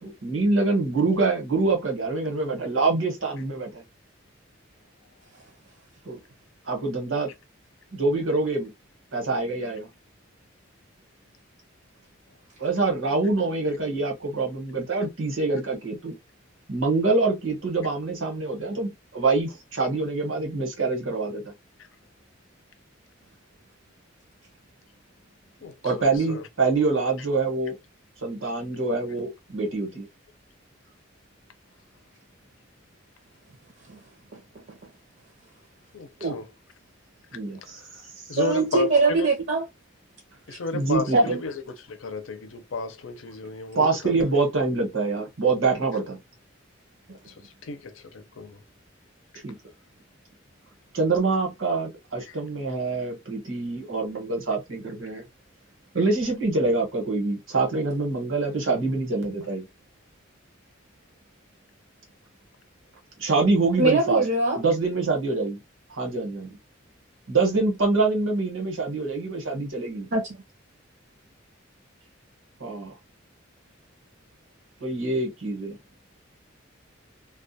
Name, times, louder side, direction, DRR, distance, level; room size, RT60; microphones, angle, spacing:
voice 1, 0.0-3.8 6.0-6.2 6.6-7.3 7.9-8.7 9.1-9.9 12.6-16.2 16.7-21.5 25.8-27.8 28.2-30.1 37.3-37.8 38.3-38.4 40.7-41.3 43.7-46.2 49.4-49.5 50.9-55.2 55.9-59.6 63.2-64.2 64.6-65.6 65.9-66.6 67.3-70.1 72.6-72.9 74.8-75.8, right 3 dB, 85° right, 1.1 m, -25 dB
voice 2, 25.6-26.5 35.9-36.5 37.7-38.0 38.3-39.3 40.5-44.1 47.3-48.6 52.3-52.4, left 3 dB, 80° left, 0.6 m, -33 dB
voice 3, 38.4-39.6 40.5-40.6 41.1-41.4 63.8-64.6 70.1-70.4, right 3 dB, 55° right, 0.6 m, -22 dB
2.3 x 2.2 x 2.7 m
head